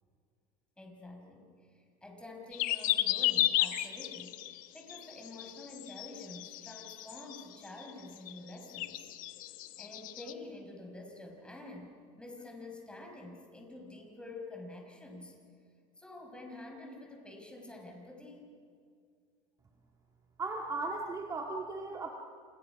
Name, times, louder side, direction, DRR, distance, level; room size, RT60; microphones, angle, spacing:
voice 1, 0.8-9.1 9.8-15.3 16.0-18.5, left 2 dB, 5° left, 2 dB, 5.4 m, -48 dB
sound 1, 2.5-7.5 7.8-7.9 8.3-8.5 8.7-10.3, left 14 dB, 60° left, 1.2 m, -33 dB
voice 2, 20.4-22.1, right 3 dB, 20° right, 1 dB, 2.0 m, -36 dB
29.0 x 28.0 x 6.0 m, 2.2 s
cardioid pair, 130°, 16 cm